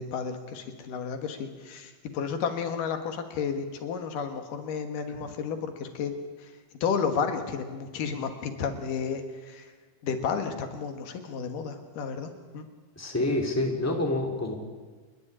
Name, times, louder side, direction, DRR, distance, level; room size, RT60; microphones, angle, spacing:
voice 1, 0.0-6.1 6.8-9.6 10.0-12.7, left 6 dB, 80° left, 6 dB, 3.2 m, -32 dB
voice 2, 13.0-14.5, left 2 dB, 5° left, 1 dB, 2.5 m, -28 dB
30.0 x 10.5 x 10.0 m, 1.4 s
omnidirectional pair, 3.8 m